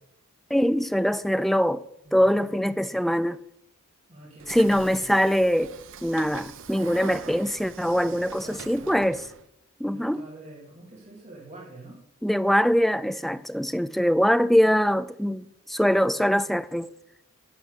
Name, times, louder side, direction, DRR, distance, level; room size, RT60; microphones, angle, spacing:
voice 1, 0.5-1.8 2.1-3.4 4.5-5.7 6.0-9.2 9.8-10.2 12.2-16.9, equal, ahead, 0.3 m, -23 dB
voice 2, 2.0-2.6 4.1-5.0 8.3-9.0 9.9-12.0, right 2 dB, 35° right, 3.0 m, -46 dB
Train / Sliding door, 4.4-9.5, right 6 dB, 60° right, 0.7 m, -43 dB
11.5 x 4.5 x 8.2 m
head